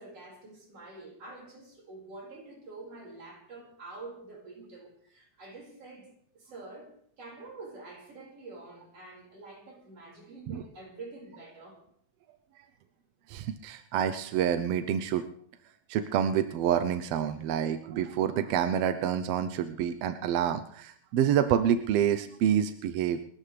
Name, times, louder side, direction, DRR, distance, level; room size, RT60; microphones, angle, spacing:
voice 1, 0.0-11.8, right 3 dB, 55° right, 6.3 m, -47 dB
voice 2, 13.3-15.2 15.9-23.2, right 9 dB, 70° right, 1.6 m, -27 dB
29.5 x 14.0 x 3.3 m
omnidirectional pair, 3.3 m